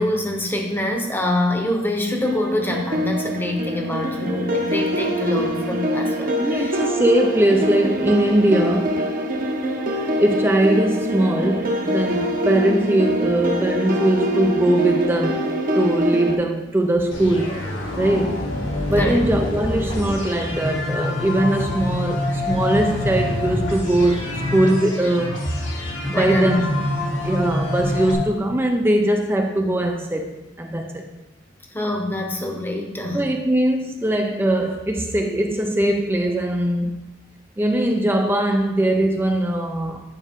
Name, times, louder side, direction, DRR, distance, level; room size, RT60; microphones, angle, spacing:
voice 1, 0.0-6.8 19.0-19.2 26.1-26.6 31.7-33.2, left 1 dB, 10° left, 0.9 m, -25 dB
sound 1, 2.2-16.4, equal, 45° right, 1.0 m, -24 dB
voice 2, 6.4-9.0 10.2-15.4 15.7-17.7 18.0-18.5 18.9-25.4 26.1-26.6 27.2-31.1 33.1-36.9 37.6-40.0, right 1 dB, 10° right, 0.4 m, -21 dB
sound 2, 17.1-28.1, left 1 dB, 90° left, 1.8 m, -26 dB
9.4 x 5.3 x 3.6 m
head